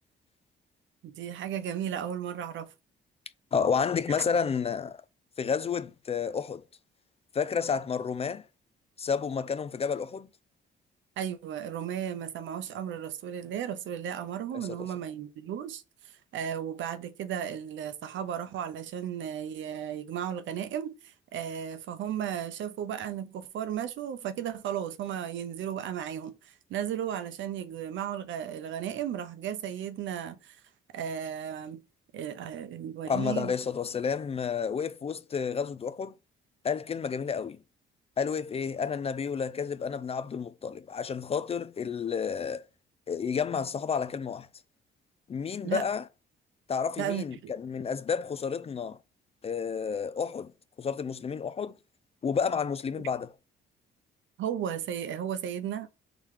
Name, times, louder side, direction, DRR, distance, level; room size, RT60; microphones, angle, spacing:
voice 1, 1.0-2.7 11.2-15.8 16.3-30.6 30.9-31.8 32.1-33.5 45.6-45.9 47.0-47.5 54.4-55.9, right 9 dB, 75° right, 0.7 m, -35 dB
voice 2, 3.5-5.0 5.4-6.6 7.3-8.4 9.0-10.3 14.7-14.9 33.1-36.1 36.6-37.6 38.2-42.7 43.1-44.5 45.3-46.0 46.7-49.0 49.4-50.5 50.8-51.8 52.2-53.3, left 6 dB, 30° left, 0.3 m, -30 dB
3.7 x 2.9 x 4.8 m
cardioid pair, 90°, 20 cm